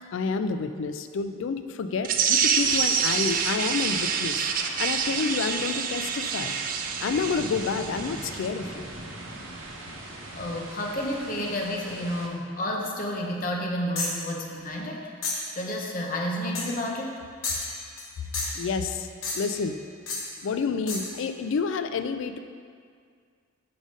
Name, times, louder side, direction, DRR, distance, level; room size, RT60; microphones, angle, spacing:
voice 1, 0.1-4.5 4.8-6.6 7.0-8.9 18.5-19.1 19.3-19.8 20.4-22.4, left 5 dB, 70° left, 9 dB, 0.3 m, -29 dB
sound 1, 2.0-8.5, right 6 dB, 45° right, 0.3 m, -27 dB
sound 2, 2.6-12.3, right 2 dB, 75° right, 0.8 m, -41 dB
voice 2, 10.3-15.1 15.6-17.2, left 1 dB, 40° left, 0 dB, 0.7 m, -30 dB
sound 3, 13.9-14.3 15.2-15.5 16.5-16.8 17.4-18.1 18.3-18.7 19.2-19.6 20.1-20.3 20.9-21.1, left 3 dB, 85° left, 0.9 m, -32 dB
5.1 x 3.9 x 5.0 m, 2.1 s
head